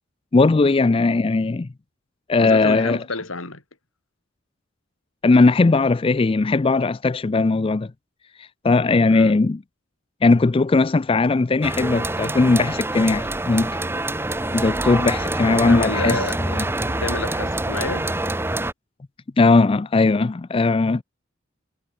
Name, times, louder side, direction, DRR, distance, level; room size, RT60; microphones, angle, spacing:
voice 1, 0.3-1.7 2.3-3.0 5.2-7.9 8.4-9.6 10.2-13.8 14.5-16.6 19.4-21.0, left 3 dB, 25° left, 0.4 m, -18 dB
voice 2, 2.4-3.6 9.1-9.3 15.6-16.4 16.9-18.1, left 3 dB, 85° left, 4.6 m, -29 dB
sound 1, 11.6-18.7, right 2 dB, 10° right, 1.1 m, -26 dB
head